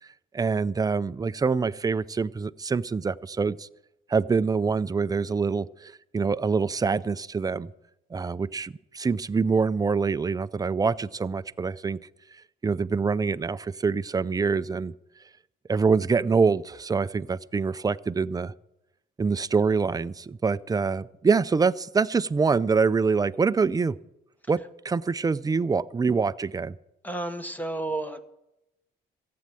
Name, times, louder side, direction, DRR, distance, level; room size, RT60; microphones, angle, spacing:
voice 1, 0.3-3.7 4.1-7.7 8.1-12.0 12.6-14.9 15.7-18.5 19.2-23.9 24.5-26.7, right 5 dB, 20° right, 0.4 m, -25 dB
voice 2, 27.0-28.2, right 2 dB, 10° left, 1.2 m, -31 dB
15.0 x 8.7 x 7.6 m
cardioid pair, 90°, 20 cm